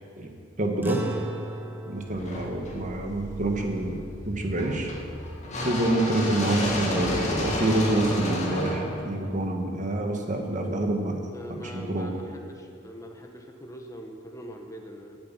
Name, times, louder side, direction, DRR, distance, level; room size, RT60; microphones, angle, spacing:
voice 1, 0.6-1.0 1.9-4.9 5.6-11.2 11.6-12.1, right 1 dB, 40° right, 3 dB, 1.5 m, -27 dB
sound 1, 0.8-5.5, right 1 dB, 10° right, 0.9 m, -39 dB
sound 2, 2.1-10.2, left 1 dB, 35° left, 1.9 m, -32 dB
voice 2, 11.3-15.2, equal, 15° left, 2 dB, 1.1 m, -42 dB
16.5 x 7.7 x 5.9 m, 2.3 s
head